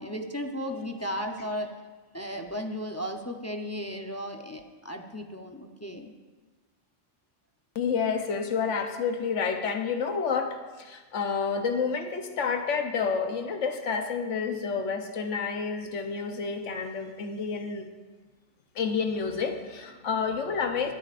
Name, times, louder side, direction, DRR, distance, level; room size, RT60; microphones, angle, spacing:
voice 1, 0.0-1.7 2.1-6.1, equal, 15° left, 2 dB, 0.5 m, -35 dB
voice 2, 7.7-17.9 18.7-20.9, left 5 dB, 85° left, 6 dB, 1.2 m, -29 dB
24.5 x 8.3 x 2.5 m, 1.3 s
omnidirectional pair, 1.2 m